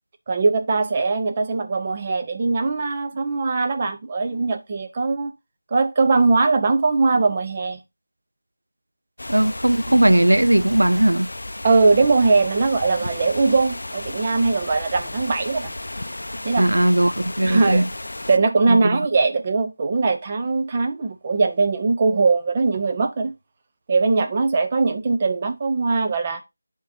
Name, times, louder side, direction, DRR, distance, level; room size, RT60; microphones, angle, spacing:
voice 1, 0.3-5.3 5.7-7.8 11.6-15.7 16.4-16.7 17.4-17.8 18.3-23.3 23.9-26.4, right 3 dB, 25° right, 0.8 m, -20 dB
sound 1, 9.2-18.4, left 1 dB, 75° left, 0.5 m, -33 dB
voice 2, 9.3-11.3 16.6-17.9 18.7-19.0, right 1 dB, 85° right, 0.5 m, -18 dB
11.0 x 3.7 x 2.8 m
figure-of-eight pair, 170°, 0 cm